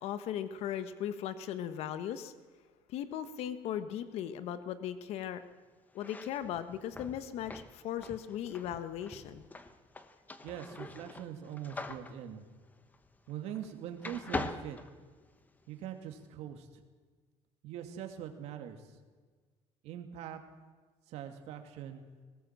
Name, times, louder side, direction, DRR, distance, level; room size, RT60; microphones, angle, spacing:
voice 1, 0.0-2.3 2.9-5.4 5.9-9.4, left 10 dB, 70° left, 11 dB, 1.2 m, -38 dB
sound 1, 5.9-13.7 14.0-15.6, left 3 dB, 15° left, 1.0 m, -43 dB
voice 2, 10.4-12.5 13.3-14.8 15.7-16.8 17.6-18.9 19.8-20.4 21.1-22.0, right 9 dB, 75° right, 6 dB, 2.5 m, -42 dB
20.5 x 18.0 x 7.5 m, 1.4 s
cardioid pair, 175°, 11 cm